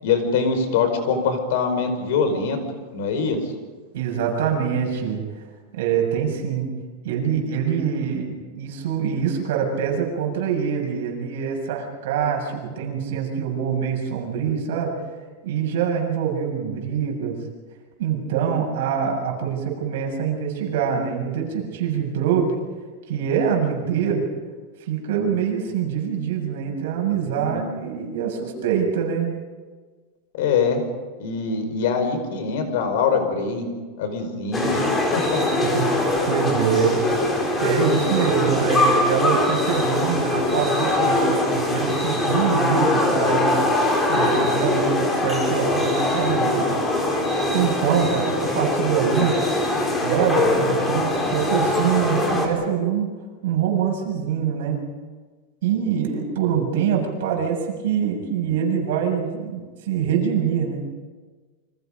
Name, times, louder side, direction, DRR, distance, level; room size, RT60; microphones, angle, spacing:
voice 1, 0.0-2.6 2.9-3.4 27.3-27.6 30.4-30.8 31.2-33.7 34.0-35.6, left 5 dB, 60° left, 7 dB, 5.0 m, -23 dB
voice 2, 3.9-5.2 5.7-6.7 7.0-14.9 15.4-17.4 18.0-22.5 23.1-24.2 24.8-29.3 35.6-43.6 44.1-46.7 47.5-49.3 50.0-53.1 53.4-54.8 55.6-60.8, right 7 dB, 65° right, 1 dB, 6.9 m, -24 dB
sound 1, 34.5-52.5, left 2 dB, 15° left, 3.8 m, -22 dB
29.0 x 25.5 x 5.3 m, 1.4 s
supercardioid pair, 170°, 0 cm